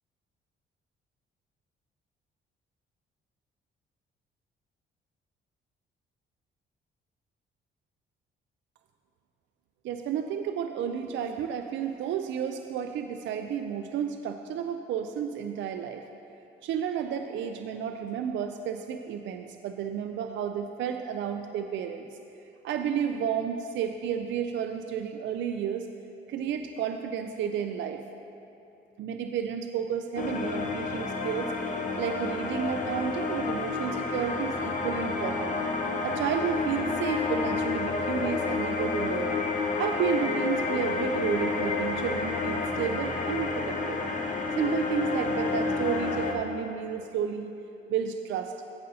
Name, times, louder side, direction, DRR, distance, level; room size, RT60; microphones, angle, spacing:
voice 1, 9.8-16.0 16.6-22.2 22.6-25.9 26.3-28.0 29.0-31.5 32.0-35.5 36.0-39.4 39.8-44.0 44.6-47.5 47.9-48.5, right 8 dB, 70° right, 6 dB, 0.4 m, -32 dB
sound 1, 30.2-46.3, left 3 dB, 40° left, 0.8 m, -29 dB
15.0 x 5.3 x 2.7 m, 2.8 s
cardioid pair, 90°, 20 cm